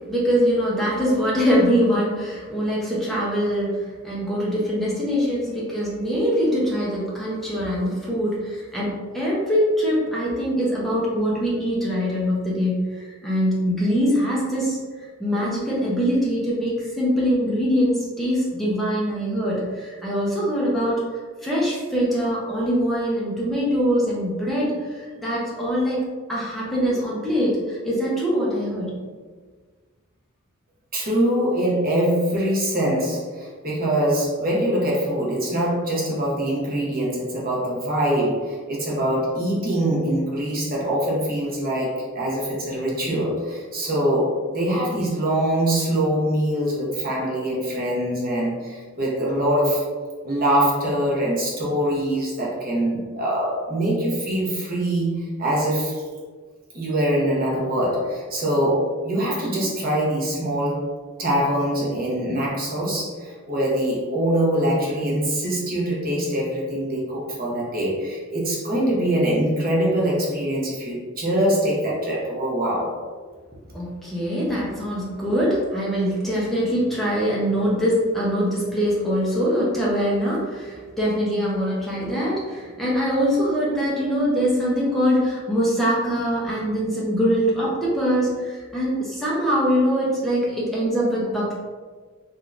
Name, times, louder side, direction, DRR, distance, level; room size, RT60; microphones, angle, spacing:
voice 1, 0.1-14.8 15.2-21.0 21.4-26.0 26.3-29.0 73.7-91.5, equal, ahead, -7 dB, 0.6 m, -23 dB
voice 2, 30.9-49.8 50.2-56.0 56.7-60.9 61.2-72.9, right 1 dB, 40° right, -5 dB, 0.8 m, -23 dB
3.3 x 2.7 x 2.4 m, 1.5 s
head